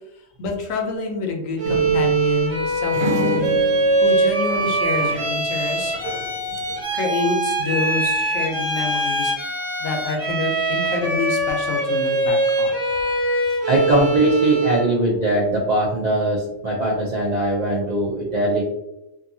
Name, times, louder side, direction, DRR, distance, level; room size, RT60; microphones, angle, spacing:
voice 1, 0.4-3.5 4.0-5.9 6.9-12.8, left 3 dB, 75° left, 3 dB, 1.0 m, -27 dB
Bowed string instrument, 1.6-15.0, right 2 dB, 20° right, 0.8 m, -22 dB
sound 1, 1.6-5.4 5.7-6.8, right 5 dB, 85° right, 1.1 m, -30 dB
voice 2, 13.6-18.6, right 1 dB, 60° right, -3 dB, 0.4 m, -20 dB
2.7 x 2.5 x 2.6 m, 0.88 s
omnidirectional pair, 1.4 m